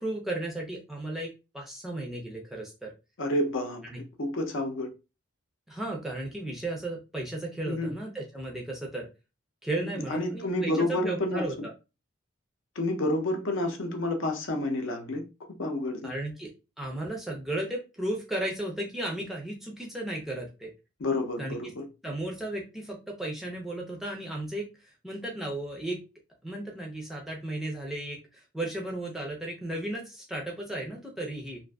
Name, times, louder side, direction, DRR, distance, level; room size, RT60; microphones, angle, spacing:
voice 1, 0.0-2.9 3.8-4.0 5.7-9.1 9.6-11.7 16.0-16.5 16.8-20.7 21.4-21.6 22.0-26.0 26.4-31.6, right 1 dB, ahead, 0.4 m, -35 dB
voice 2, 3.2-3.9 4.2-4.9 7.7-7.9 10.1-11.7 12.8-15.2 15.6-16.1 21.0-21.9, left 1 dB, 65° left, 0.6 m, -29 dB
2.4 x 2.4 x 2.2 m
head